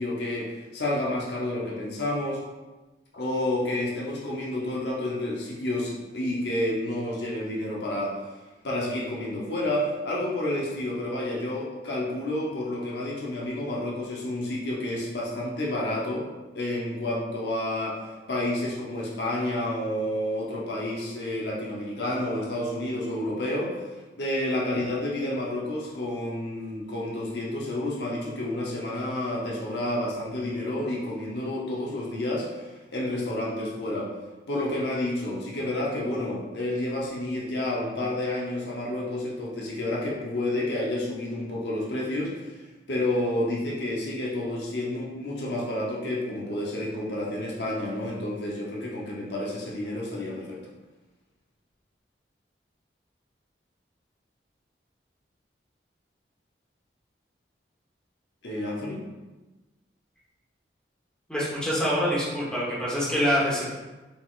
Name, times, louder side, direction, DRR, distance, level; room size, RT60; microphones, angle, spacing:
voice 1, 0.0-2.4 3.1-8.2 8.6-16.3 16.5-18.0 18.3-23.8 24.2-34.1 34.5-42.6 42.9-50.6 58.4-59.0, left 1 dB, 65° left, -4 dB, 0.8 m, -30 dB
voice 2, 61.3-63.7, equal, 5° left, -8 dB, 1.0 m, -25 dB
4.1 x 3.8 x 2.4 m, 1.2 s
head